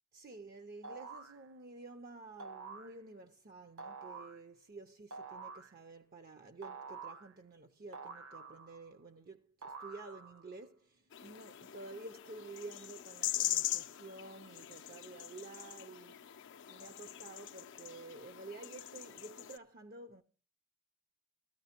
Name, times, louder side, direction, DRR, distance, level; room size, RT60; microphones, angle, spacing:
voice 1, 0.1-16.3 16.7-20.2, right 3 dB, 40° right, 0.5 m, -51 dB
sound 1, 0.8-1.4 2.4-2.9 3.8-4.4 5.1-5.7 6.6-7.3 7.9-8.9 9.6-10.4, right 4 dB, 65° right, 1.0 m, -48 dB
sound 2, 11.1-19.6, left 13 dB, 55° left, 0.5 m, -41 dB
14.5 x 13.5 x 2.9 m
head